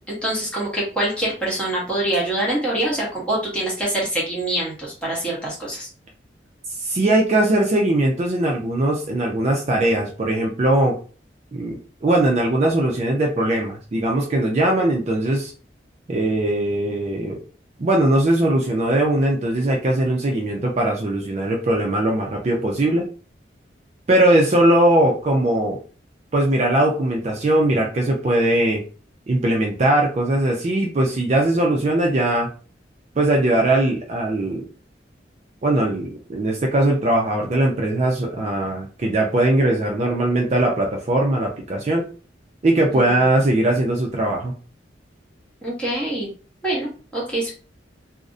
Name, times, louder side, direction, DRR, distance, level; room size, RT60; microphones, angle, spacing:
voice 1, 0.1-5.9 42.9-43.2 45.6-46.3 46.6-47.5, right 1 dB, 5° left, -6 dB, 0.8 m, -25 dB
voice 2, 6.8-11.0 11.5-15.5 16.1-17.4 17.8-23.1 24.1-25.8 26.3-28.8 29.3-32.5 33.2-34.7 35.6-42.1 42.6-44.5, right 1 dB, 35° right, 0 dB, 0.3 m, -20 dB
2.4 x 2.0 x 2.5 m, 0.38 s
head